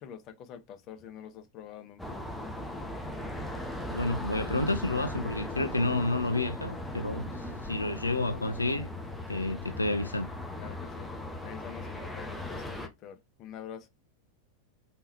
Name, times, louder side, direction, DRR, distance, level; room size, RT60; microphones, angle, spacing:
voice 1, 0.0-2.3 4.6-4.7 7.2-7.4 10.5-11.2 11.4-13.9, left 9 dB, 35° left, 0.9 m, -46 dB
sound 1, 2.0-12.9, left 1 dB, 5° left, 1.0 m, -38 dB
voice 2, 3.9-8.9 9.3-10.3, left 2 dB, 80° left, 0.4 m, -30 dB
4.1 x 3.8 x 2.7 m
figure-of-eight pair, 90°, 0 cm